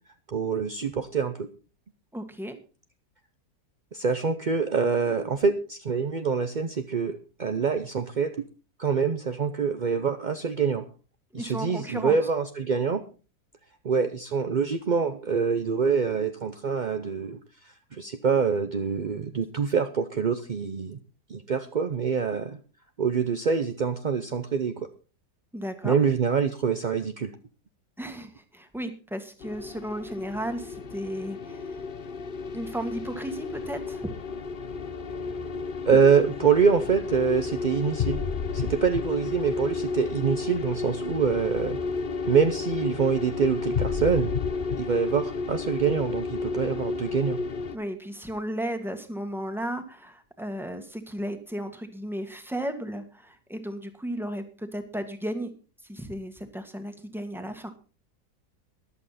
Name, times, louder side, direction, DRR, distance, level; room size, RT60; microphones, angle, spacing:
voice 1, 0.3-1.5 3.9-8.5 8.8-10.9 11.3-13.0 13.8-21.0 21.3-22.6 23.0-24.9 25.8-27.3 35.9-38.2 38.5-41.8 42.2-44.3 44.8-47.4, right 6 dB, 50° right, 7 dB, 0.5 m, -25 dB
voice 2, 2.1-2.6 11.3-12.2 25.5-26.0 28.0-31.7 32.5-34.1 47.7-55.5 55.9-57.7, right 1 dB, ahead, 7 dB, 1.6 m, -34 dB
sound 1, 29.4-47.8, left 4 dB, 45° left, 0.8 m, -32 dB
14.0 x 11.5 x 4.2 m, 0.35 s
omnidirectional pair, 1.8 m